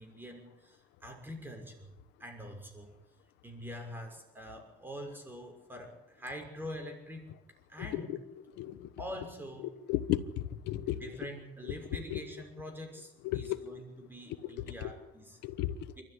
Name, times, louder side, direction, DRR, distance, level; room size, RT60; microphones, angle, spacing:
voice 1, 0.0-1.9 2.2-2.9 3.4-7.3 7.7-8.2 9.0-9.7 10.9-15.4 16.0-16.1, equal, 10° right, 3 dB, 6.2 m, -45 dB
voice 2, 8.6-8.9 9.9-10.2 10.6-11.0 12.1-12.2 13.2-13.6 14.4-14.5 14.8-14.9 15.4-15.8, left 14 dB, 90° left, 14 dB, 1.2 m, -33 dB
28.5 x 13.5 x 9.9 m, 0.91 s
cardioid pair, 110°, 17 cm